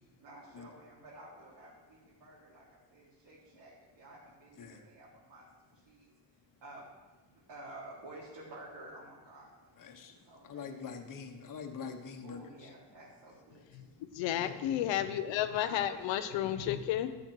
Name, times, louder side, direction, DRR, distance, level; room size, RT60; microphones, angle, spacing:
voice 1, 0.2-6.1 6.6-6.9 7.2-10.8 12.2-14.0 15.6-16.6, right 1 dB, 65° right, -8 dB, 3.8 m, -52 dB
voice 2, 9.8-12.7 14.4-14.6, left 6 dB, 45° left, 4 dB, 1.4 m, -45 dB
voice 3, 14.1-17.2, left 11 dB, 85° left, 11 dB, 0.9 m, -32 dB
12.0 x 6.5 x 6.4 m, 1.2 s
cardioid pair, 85°, 44 cm